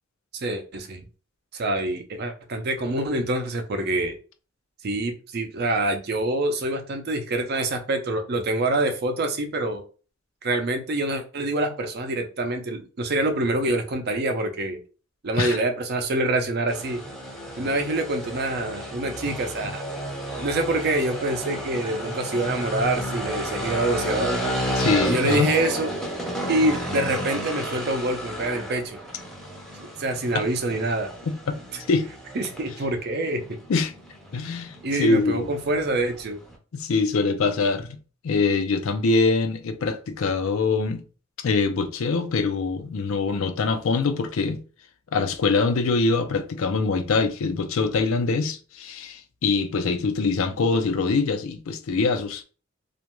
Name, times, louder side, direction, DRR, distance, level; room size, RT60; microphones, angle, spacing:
voice 1, 0.3-1.0 1.5-4.2 4.8-9.8 10.4-14.8 15.2-17.0 17.6-19.8 20.4-24.4 25.0-25.9 26.5-29.0 30.0-31.1 32.3-33.6 34.8-36.4, right 2 dB, 55° right, 0.5 m, -26 dB
sound 1, 16.7-36.6, right 1 dB, ahead, 0.5 m, -32 dB
voice 2, 24.7-25.5 30.3-30.4 31.3-31.6 31.9-32.1 33.7-33.9 34.3-35.5 36.7-38.0 38.2-41.0 41.4-44.6 45.1-52.4, left 4 dB, 85° left, 0.4 m, -24 dB
2.5 x 2.1 x 2.9 m
head